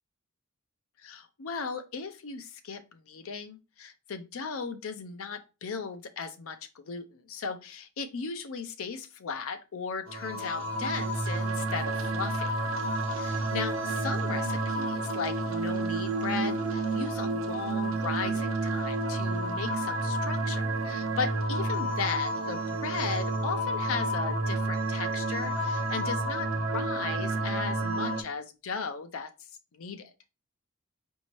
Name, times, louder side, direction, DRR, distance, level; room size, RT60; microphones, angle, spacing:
voice 1, 1.0-12.6 13.1-29.3 29.7-30.1, left 5 dB, 65° left, 7 dB, 0.5 m, -37 dB
sound 1, 10.1-28.2, right 2 dB, 65° right, 0.8 m, -30 dB
5.2 x 2.7 x 3.0 m, 0.29 s
head